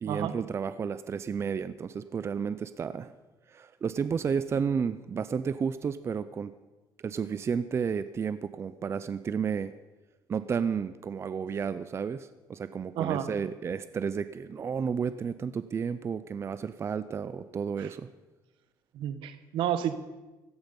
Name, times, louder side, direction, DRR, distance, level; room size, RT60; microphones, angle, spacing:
voice 1, 0.0-3.1 3.5-6.5 7.0-9.7 10.3-18.1, right 6 dB, 30° right, 13 dB, 0.6 m, -32 dB
voice 2, 12.9-13.3 17.8-17.9 18.9-20.0, right 10 dB, 80° right, 12 dB, 1.2 m, -30 dB
17.0 x 13.5 x 5.4 m, 1.1 s
cardioid pair, 130°, 8 cm